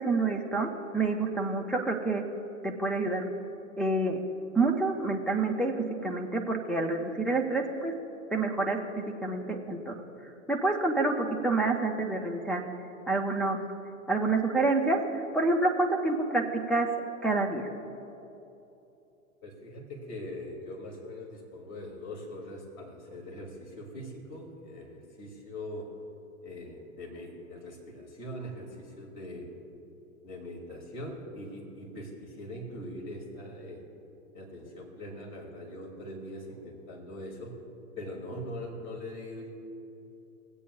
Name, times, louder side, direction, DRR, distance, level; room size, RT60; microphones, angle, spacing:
voice 1, 0.0-2.2 2.6-3.3 3.8-4.2 4.6-5.7 6.0-7.9 8.3-9.9 10.5-12.6 13.1-13.6 14.1-16.9 17.2-17.7, right 3 dB, ahead, 1 dB, 0.6 m, -28 dB
voice 2, 19.4-25.9 26.4-29.5 30.2-33.8 34.3-37.5 38.0-39.5, left 1 dB, 40° left, 0 dB, 2.6 m, -42 dB
24.0 x 8.4 x 2.3 m, 2.9 s
hypercardioid pair, 110°, 41 cm